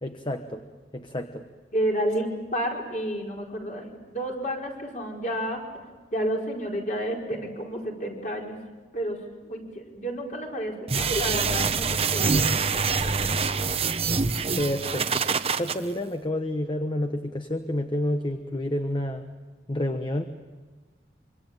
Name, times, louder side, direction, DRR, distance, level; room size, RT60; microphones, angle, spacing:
voice 1, 0.0-0.6 0.9-1.4 14.6-19.3 19.7-20.2, left 1 dB, 25° left, 6 dB, 1.1 m, -29 dB
voice 2, 1.7-5.8 6.1-8.6 8.9-12.3, equal, 45° left, 0 dB, 4.8 m, -30 dB
sound 1, 10.9-15.7, right 5 dB, 35° right, 1.0 m, -25 dB
25.5 x 25.0 x 8.9 m, 1.3 s
head